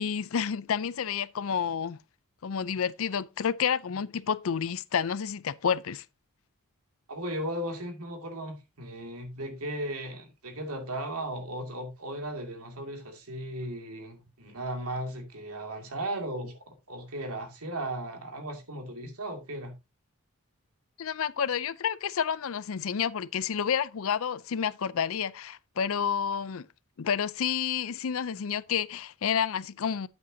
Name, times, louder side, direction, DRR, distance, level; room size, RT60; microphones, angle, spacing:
voice 1, 0.0-2.0 2.4-6.0 21.0-26.7 27.0-30.1, left 7 dB, 65° left, 0.5 m, -30 dB
voice 2, 7.1-19.7, right 1 dB, 85° right, 2.3 m, -36 dB
9.3 x 7.9 x 2.7 m
head